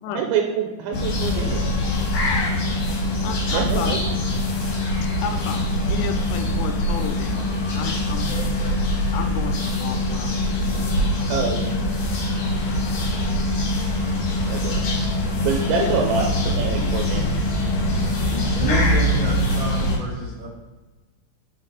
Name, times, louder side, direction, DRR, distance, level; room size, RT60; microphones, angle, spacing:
voice 1, 0.1-1.8 3.5-4.0 11.3-11.7 14.5-14.9 15.4-17.3, right 6 dB, 85° right, 2 dB, 2.9 m, -26 dB
sound 1, 0.9-20.0, left 1 dB, 65° left, 2.3 m, -23 dB
voice 2, 3.2-4.2 4.7-8.3 8.6-8.8 9.1-10.7 10.9-13.3 15.8-16.2 16.8-17.0, left 7 dB, 90° left, 6 dB, 3.0 m, -34 dB
voice 3, 18.3-20.5, right 2 dB, 65° right, -11 dB, 1.2 m, -28 dB
6.3 x 6.3 x 3.2 m, 1.2 s
omnidirectional pair, 5.3 m